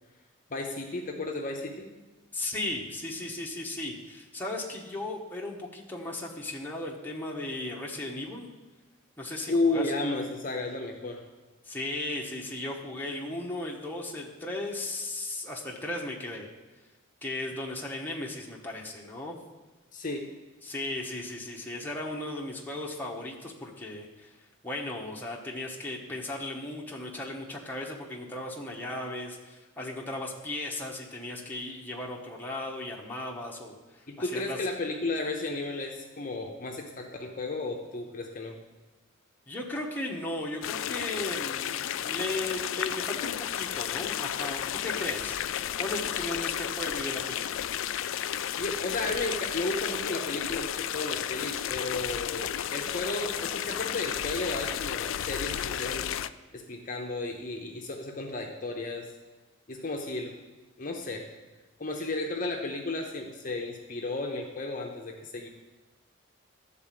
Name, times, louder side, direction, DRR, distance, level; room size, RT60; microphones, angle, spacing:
voice 1, 0.5-1.9 9.5-11.2 19.9-20.3 34.1-38.6 48.6-56.1 56.5-59.1 59.7-60.4 60.8-61.3 61.8-65.5, left 2 dB, 40° left, 2 dB, 0.7 m, -33 dB
voice 2, 2.3-8.5 9.2-9.9 11.6-16.5 17.2-19.4 20.6-24.4 24.6-34.6 39.5-47.7, left 2 dB, 10° left, -3 dB, 1.0 m, -36 dB
sound 1, 40.6-56.3, left 10 dB, 70° left, 0.3 m, -33 dB
12.0 x 4.1 x 7.5 m, 1.2 s
head